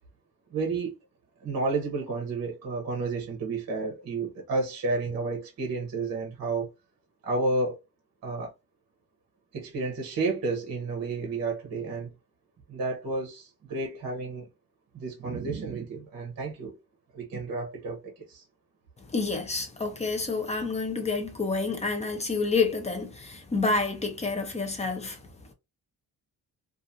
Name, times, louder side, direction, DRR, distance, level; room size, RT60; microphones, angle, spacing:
voice 1, 0.5-1.0 1.4-6.7 7.2-7.8 8.2-8.5 9.5-12.1 12.7-14.5 14.9-16.7 17.1-18.4, right 3 dB, 45° right, 0.8 m, -31 dB
voice 2, 19.1-25.2, left 3 dB, 20° left, 0.5 m, -28 dB
2.5 x 2.4 x 2.7 m
cardioid pair, 150°, 36 cm